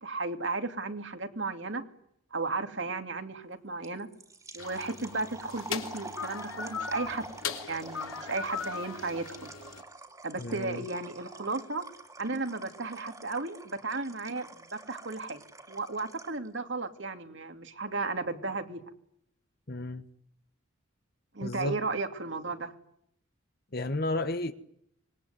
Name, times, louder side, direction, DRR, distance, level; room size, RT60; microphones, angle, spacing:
voice 1, 0.0-1.8 2.3-4.1 4.5-7.3 7.7-9.5 10.2-11.8 12.2-15.4 15.7-18.8 21.3-22.7, right 3 dB, 60° right, 2.6 m, -34 dB
sound 1, 3.8-16.5, right 3 dB, 15° right, 2.6 m, -47 dB
sound 2, 4.6-9.8, left 6 dB, 80° left, 3.4 m, -39 dB
voice 2, 10.4-10.8 19.7-20.1 21.4-21.8 23.7-24.5, left 2 dB, 50° left, 1.2 m, -32 dB
26.0 x 21.5 x 9.5 m
head